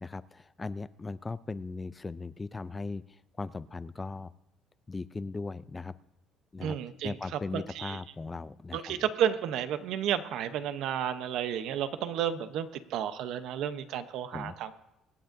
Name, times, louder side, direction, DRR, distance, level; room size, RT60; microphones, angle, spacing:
voice 1, 0.0-4.3 4.9-5.9 6.5-6.8 7.0-9.0 14.3-14.6, left 3 dB, 15° left, 16 dB, 0.3 m, -38 dB
voice 2, 6.6-8.0 8.7-14.7, right 9 dB, 70° right, 11 dB, 0.8 m, -32 dB
24.5 x 9.0 x 2.6 m, 0.90 s
cardioid pair, 130°, 0 cm